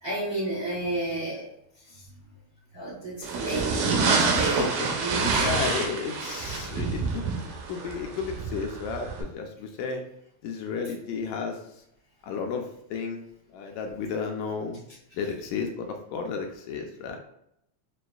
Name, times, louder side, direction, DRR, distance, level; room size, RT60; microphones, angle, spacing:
voice 1, 0.0-1.5 1.9-2.1 2.7-5.6, right 1 dB, 55° right, -7 dB, 1.0 m, -32 dB
sound 1, 3.2-9.2, right 4 dB, 85° right, 2.2 m, -27 dB
voice 2, 4.3-4.9 5.4-7.3 7.7-10.0 10.4-11.6 12.2-13.3 13.5-14.8 15.1-17.2, left 5 dB, 80° left, 3 dB, 1.8 m, -33 dB
6.2 x 2.4 x 2.3 m, 0.77 s
omnidirectional pair, 3.4 m